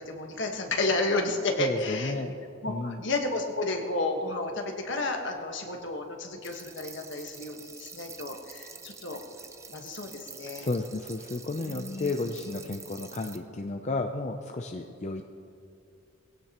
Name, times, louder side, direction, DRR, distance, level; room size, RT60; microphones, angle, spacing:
voice 1, 0.0-2.1 2.6-9.2 9.7-10.7 11.6-12.1 12.4-12.6, left 2 dB, 60° left, 2 dB, 1.5 m, -31 dB
voice 2, 1.6-2.3 2.7-3.0 10.6-15.2, left 3 dB, 35° left, 4 dB, 0.5 m, -32 dB
sound 1, 6.4-13.4, right 5 dB, 15° right, 0.5 m, -47 dB
21.0 x 16.5 x 3.0 m, 2.5 s
head